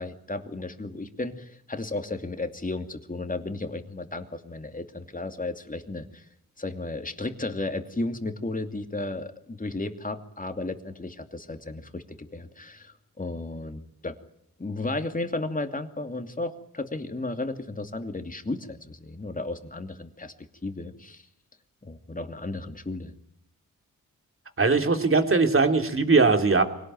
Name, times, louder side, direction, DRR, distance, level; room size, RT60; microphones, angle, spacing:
voice 1, 0.0-6.2 6.6-14.1 14.6-20.3 20.6-21.2 21.8-23.1, left 2 dB, 25° left, 7 dB, 2.7 m, -34 dB
voice 2, 24.6-26.6, right 4 dB, 40° right, 6 dB, 3.3 m, -20 dB
24.5 x 18.0 x 9.1 m, 0.72 s
cardioid pair, 70°, 34 cm